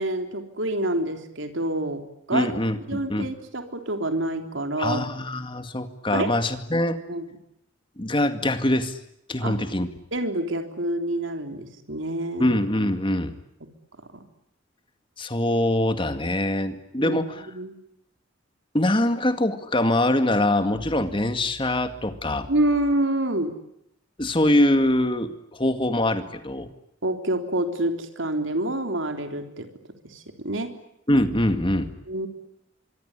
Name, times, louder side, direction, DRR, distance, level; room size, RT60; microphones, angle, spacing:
voice 1, 0.0-2.5 2.9-5.1 6.1-6.3 7.1-7.2 9.4-9.6 10.1-12.6 14.1-14.2 17.0-17.8 22.5-23.5 27.0-29.7 30.0-30.7 32.1-32.3, right 1 dB, 80° right, 6 dB, 3.5 m, -27 dB
voice 2, 2.3-3.3 4.8-7.0 8.0-9.0 9.3-9.9 12.4-13.3 15.2-17.4 18.7-22.5 24.2-26.7 31.1-31.9, left 1 dB, 25° left, 9 dB, 2.1 m, -23 dB
25.0 x 23.5 x 9.8 m, 0.77 s
head